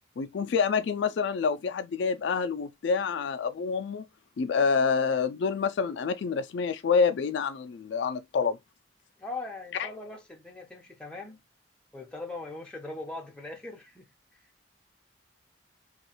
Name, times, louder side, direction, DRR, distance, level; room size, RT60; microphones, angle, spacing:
voice 1, 0.2-4.0 4.4-8.6 9.8-9.9, left 5 dB, 65° left, 0.3 m, -27 dB
voice 2, 9.2-11.4 11.9-14.1, left 2 dB, 5° left, 0.7 m, -40 dB
3.0 x 2.3 x 2.9 m
head